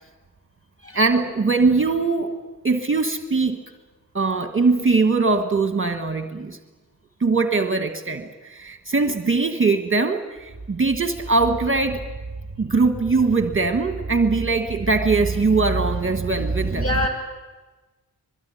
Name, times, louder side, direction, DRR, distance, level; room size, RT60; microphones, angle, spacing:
voice 1, 0.9-2.4 2.6-3.6 4.1-6.6 7.2-12.1 12.6-17.1, right 3 dB, 30° right, 7 dB, 1.5 m, -21 dB
voice 2, 16.7-17.1, left 2 dB, 35° left, 1 dB, 7.9 m, -26 dB
23.5 x 22.5 x 9.9 m, 1.2 s
wide cardioid pair, 85°, 39 cm